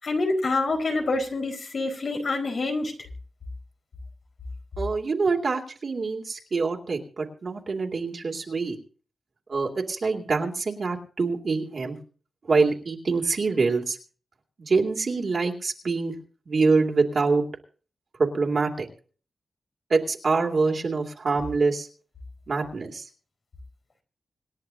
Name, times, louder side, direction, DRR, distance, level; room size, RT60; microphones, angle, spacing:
voice 1, 0.0-2.9, left 2 dB, 60° left, 2 dB, 4.5 m, -26 dB
voice 2, 4.8-8.8 9.5-12.0 12.5-14.0 14.6-16.1 16.5-17.4 18.2-18.9 19.9-21.9 22.5-23.1, right 4 dB, 55° right, 1 dB, 2.5 m, -25 dB
26.0 x 10.5 x 2.7 m, 0.39 s
wide cardioid pair, 90°, 0 cm